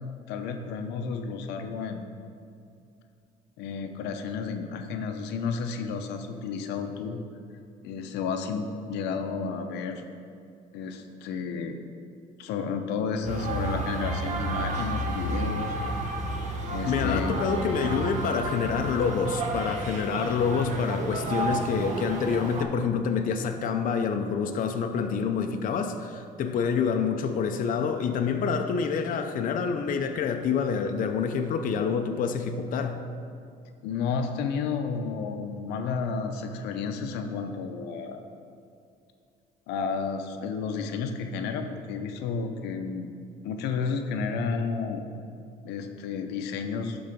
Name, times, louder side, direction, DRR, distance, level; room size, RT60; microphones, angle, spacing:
voice 1, 0.3-2.0 3.6-7.2 7.8-10.0 10.7-11.8 12.4-15.7 16.7-17.5 33.8-38.2 39.7-43.1 43.4-45.0 45.6-47.0, left 5 dB, 90° left, 6 dB, 0.7 m, -31 dB
sound 1, 13.2-22.6, right 2 dB, 45° right, 1.1 m, -31 dB
voice 2, 16.8-33.0, left 6 dB, 55° left, 6 dB, 0.6 m, -27 dB
11.5 x 3.9 x 5.2 m, 2.4 s
cardioid pair, 110°, 17 cm